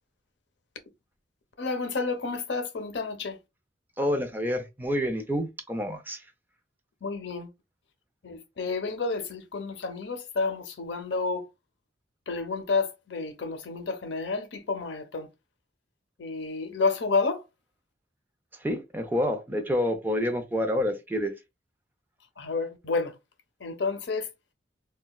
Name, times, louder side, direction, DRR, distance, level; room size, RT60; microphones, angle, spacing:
voice 1, 1.6-3.4 7.0-7.5 8.2-11.5 12.3-15.3 16.2-17.4 22.4-23.2 23.6-24.3, left 4 dB, 70° left, 0.6 m, -30 dB
voice 2, 4.0-6.2 18.6-21.3, equal, 10° right, 0.5 m, -28 dB
3.9 x 2.2 x 2.2 m
head